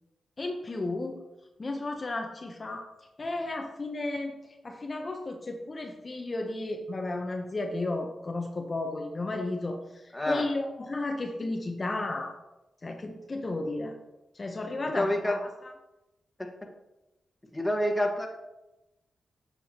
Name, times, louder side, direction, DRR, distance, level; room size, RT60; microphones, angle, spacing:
voice 1, 0.4-1.2 1.6-2.9 3.2-4.3 4.6-12.3 12.8-13.9 14.3-15.4, left 2 dB, 40° left, 3 dB, 0.7 m, -33 dB
voice 2, 10.1-10.4 14.8-15.4 16.4-16.5 17.5-18.3, left 1 dB, 15° left, 1 dB, 1.4 m, -27 dB
7.8 x 6.9 x 2.9 m, 0.97 s
cardioid pair, 60°, 0 cm